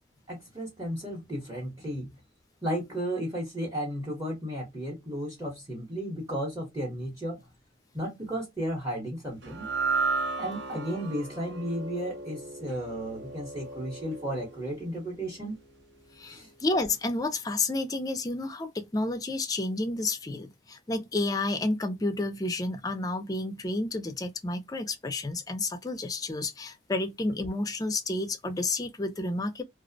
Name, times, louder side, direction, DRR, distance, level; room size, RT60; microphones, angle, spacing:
voice 1, 0.3-2.1 2.6-7.4 7.9-9.7 10.4-15.6 16.3-16.5, equal, 15° right, 0.7 m, -34 dB
sound 1, 9.4-15.8, right 4 dB, 60° right, 0.6 m, -34 dB
voice 2, 16.2-29.6, left 2 dB, 20° left, 0.4 m, -30 dB
2.4 x 2.0 x 2.5 m
head